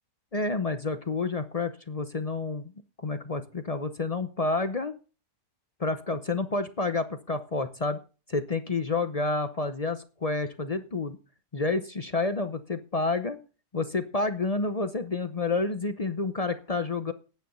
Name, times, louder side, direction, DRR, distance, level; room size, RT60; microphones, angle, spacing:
voice 1, 0.3-2.7 3.0-5.0 5.8-8.0 8.3-11.2 11.5-13.4 13.7-17.1, left 3 dB, 40° left, 10 dB, 0.5 m, -29 dB
9.9 x 9.3 x 5.5 m, 0.35 s
omnidirectional pair, 1.7 m